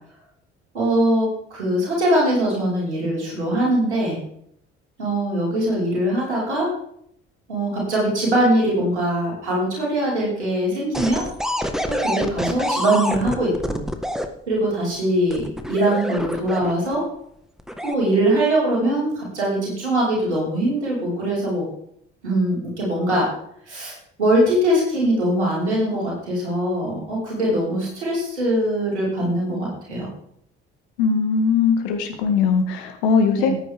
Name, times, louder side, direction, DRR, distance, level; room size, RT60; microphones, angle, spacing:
voice 1, 0.7-4.2 5.0-6.7 7.5-11.3 11.9-13.8 14.5-17.1 17.8-21.7 22.2-23.3 23.6-30.1 33.3-33.5, right 1 dB, 90° right, -4 dB, 5.2 m, -22 dB
sound 1, 10.9-14.3 15.3-16.9 17.6-17.9, equal, ahead, 1.7 m, -26 dB
voice 2, 31.0-33.5, left 5 dB, 75° left, 5 dB, 2.1 m, -20 dB
18.0 x 9.4 x 3.7 m, 0.70 s
hypercardioid pair, 50°, 33 cm